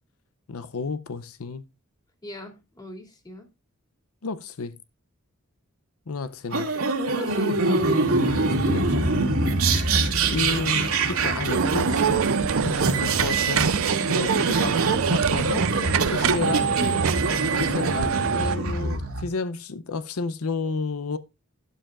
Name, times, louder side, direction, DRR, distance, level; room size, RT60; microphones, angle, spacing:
voice 1, 0.5-1.6 4.2-4.7 6.1-6.7 8.4-9.3 10.3-12.0 12.6-13.7 14.1-15.7 16.1-16.7 17.6-21.2, left 4 dB, 85° left, 0.6 m, -31 dB
voice 2, 2.2-3.5 6.5-6.9 7.1-8.7 10.3-10.6 14.7-15.0 16.8-17.0, left 1 dB, 20° left, 2.6 m, -41 dB
sound 1, 6.5-19.2, right 3 dB, 85° right, 2.3 m, -25 dB
sound 2, 11.5-18.6, right 6 dB, 70° right, 0.4 m, -25 dB
12.0 x 11.5 x 2.4 m
head